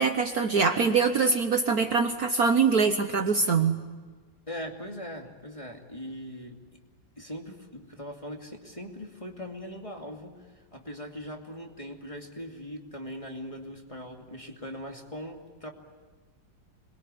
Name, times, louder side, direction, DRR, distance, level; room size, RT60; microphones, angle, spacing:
voice 1, 0.0-3.8, right 5 dB, 55° right, 6 dB, 1.4 m, -23 dB
voice 2, 4.5-6.6 7.2-15.7, equal, 15° left, 1 dB, 2.5 m, -40 dB
26.5 x 22.0 x 9.8 m, 1.3 s
omnidirectional pair, 2.2 m